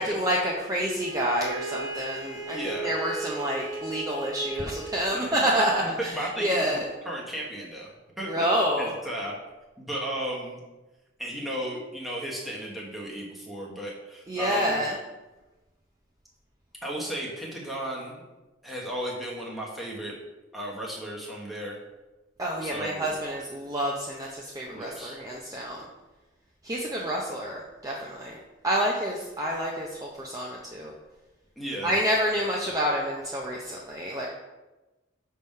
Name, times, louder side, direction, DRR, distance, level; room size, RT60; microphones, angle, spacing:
voice 1, 0.0-6.1 6.4-6.9 8.3-8.9 14.3-14.9 22.4-25.8 26.6-28.4 28.6-30.9 31.8-34.3, equal, 15° right, -3 dB, 0.5 m, -28 dB
Bowed string instrument, 1.0-5.2, right 3 dB, 65° right, 1.0 m, -36 dB
voice 2, 2.5-2.9 5.1-5.4 5.8-7.9 8.2-8.5 8.8-9.3 9.8-10.6 11.2-14.8 16.8-18.2 18.6-20.1 20.5-21.8 22.6-23.1 24.7-25.2 31.6-32.0, equal, ahead, -4 dB, 1.0 m, -35 dB
5.9 x 3.6 x 5.3 m, 1.1 s
head